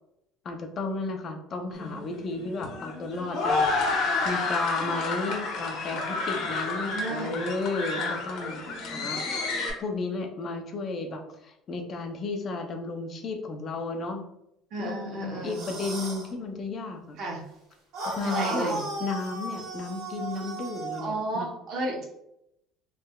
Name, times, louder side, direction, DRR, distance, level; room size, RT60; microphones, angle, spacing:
voice 1, 0.4-3.7 4.0-9.2 9.8-14.3 14.8-17.2 18.2-18.7 19.0-21.5, left 3 dB, 30° left, 4 dB, 0.4 m, -33 dB
sound 1, 1.7-9.7, left 3 dB, 50° left, 0.8 m, -30 dB
voice 2, 6.8-7.4 8.0-8.1 14.7-15.6 17.2-17.4 18.2-18.8 21.0-22.0, right 2 dB, 45° right, 0 dB, 0.8 m, -32 dB
sound 2, 15.4-16.3 17.9-21.1, right 2 dB, 70° right, 1.2 m, -35 dB
3.5 x 3.1 x 2.2 m, 0.80 s
cardioid pair, 170°, 0 cm